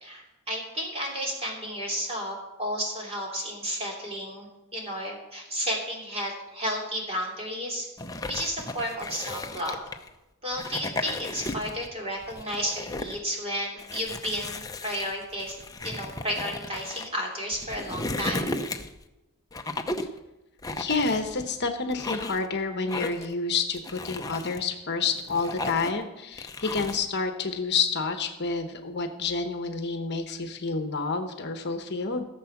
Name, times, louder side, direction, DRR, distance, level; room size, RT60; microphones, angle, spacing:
voice 1, 0.0-7.9 8.3-9.8 10.4-15.6 15.8-18.5, equal, 25° right, -1 dB, 2.9 m, -32 dB
sound 1, 8.0-10.1 10.5-11.9 12.2-13.2 13.8-17.1 17.5-19.0 19.5-20.2 20.6-21.5 21.9-22.5 22.9-23.3 23.7-24.6 25.1-26.0 26.4-27.0, left 2 dB, 15° left, 0.6 m, -35 dB
voice 2, 20.8-32.3, left 4 dB, 50° left, 6 dB, 1.0 m, -29 dB
16.0 x 7.2 x 5.9 m, 0.99 s
head